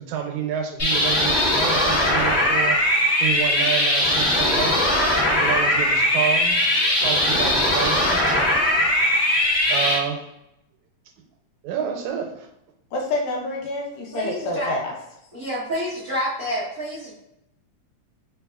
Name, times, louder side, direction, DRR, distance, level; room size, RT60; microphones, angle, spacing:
voice 1, 0.0-2.8 3.2-4.8 5.3-6.6 7.0-8.2 9.7-10.2 11.6-12.5, right 8 dB, 85° right, 4 dB, 2.0 m, -28 dB
sound 1, 0.8-9.9, left 1 dB, 40° left, 0.9 m, -20 dB
voice 2, 12.9-14.9, left 2 dB, 75° left, 0 dB, 1.9 m, -27 dB
voice 3, 14.1-14.7 15.3-17.1, equal, 70° right, -10 dB, 0.8 m, -28 dB
4.1 x 4.0 x 2.3 m, 0.85 s
omnidirectional pair, 3.3 m